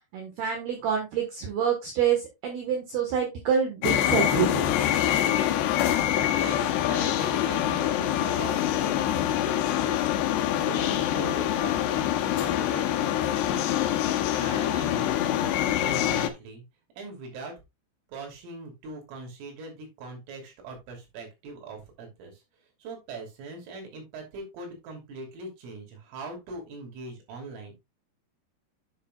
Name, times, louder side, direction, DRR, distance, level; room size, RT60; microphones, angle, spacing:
voice 1, 0.1-4.9, right 7 dB, 65° right, 2 dB, 3.0 m, -27 dB
sound 1, 3.8-16.3, left 11 dB, 75° left, 2.7 m, -25 dB
voice 2, 6.3-10.0 10.6-14.1 14.4-15.4 15.7-16.6 17.0-17.6 18.1-22.3 22.8-27.7, right 3 dB, 90° right, 2 dB, 5.6 m, -41 dB
10.0 x 7.5 x 2.4 m, 0.22 s
omnidirectional pair, 5.6 m